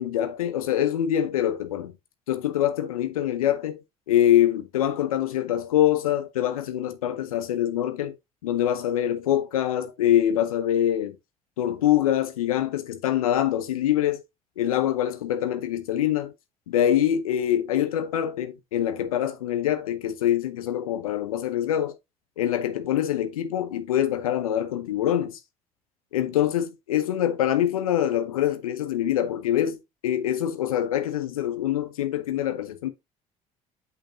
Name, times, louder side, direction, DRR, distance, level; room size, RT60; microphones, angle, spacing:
voice 1, 0.0-1.9 2.3-3.8 4.1-8.1 8.4-11.1 11.6-14.2 14.6-16.3 16.7-21.9 22.4-25.4 26.1-32.9, left 11 dB, 80° left, 0.8 m, -24 dB
8.3 x 5.7 x 2.4 m
figure-of-eight pair, 55°, 18 cm